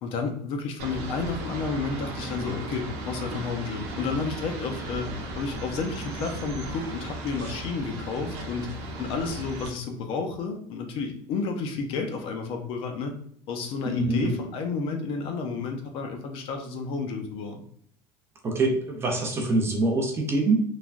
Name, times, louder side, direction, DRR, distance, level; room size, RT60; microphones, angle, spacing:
voice 1, 0.0-8.7 9.0-13.1 13.5-17.6, left 4 dB, 45° left, 4 dB, 0.5 m, -31 dB
sound 1, 0.8-9.7, right 1 dB, 65° right, 0.8 m, -36 dB
voice 2, 13.8-14.3 18.4-20.6, right 2 dB, 20° right, 1 dB, 0.5 m, -24 dB
3.2 x 2.2 x 2.4 m, 0.63 s
cardioid pair, 160°, 12 cm